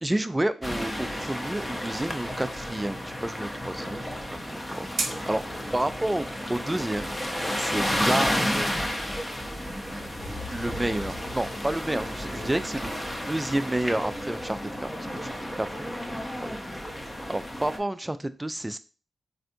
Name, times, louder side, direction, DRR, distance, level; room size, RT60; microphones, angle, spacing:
voice 1, 0.0-5.4 5.7-7.1 7.6-8.9 10.5-12.9 13.3-16.6 17.2-18.8, right 1 dB, 15° right, 11 dB, 0.3 m, -30 dB
sound 1, 0.6-17.8, equal, 15° left, 0.6 m, -32 dB
sound 2, 4.7-13.7, right 3 dB, 65° right, 0.6 m, -42 dB
sound 3, 9.6-13.3, left 1 dB, 85° left, 1.1 m, -42 dB
3.3 x 2.6 x 2.6 m, 0.35 s
supercardioid pair, 40°, 0 cm